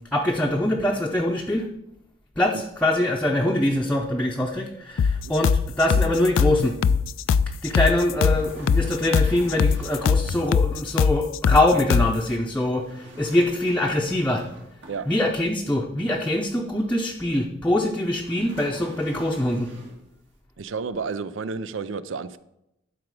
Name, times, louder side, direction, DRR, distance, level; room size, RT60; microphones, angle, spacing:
voice 1, 0.1-1.7 2.4-6.8 7.6-14.4 15.1-19.7, left 1 dB, 10° left, -1 dB, 0.6 m, -23 dB
sound 1, 5.0-12.2, left 6 dB, 85° left, 0.3 m, -21 dB
sound 2, 7.9-10.1 12.7-15.4 18.1-20.1, right 1 dB, 65° right, 2.3 m, -45 dB
voice 2, 20.6-22.4, right 5 dB, 85° right, 14 dB, 0.5 m, -31 dB
11.5 x 4.8 x 4.8 m, 0.83 s
head